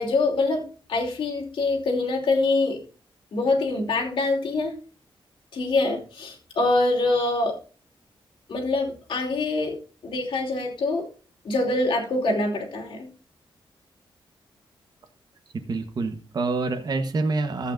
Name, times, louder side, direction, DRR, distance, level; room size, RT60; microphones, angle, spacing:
voice 1, 0.0-2.8 3.3-4.8 5.5-7.6 8.5-9.8 10.0-11.1 11.4-13.1, left 2 dB, 65° left, -1 dB, 3.0 m, -24 dB
voice 2, 15.5-17.7, right 3 dB, 50° right, 6 dB, 1.1 m, -27 dB
14.0 x 8.3 x 2.5 m, 0.37 s
wide cardioid pair, 130°, 9 cm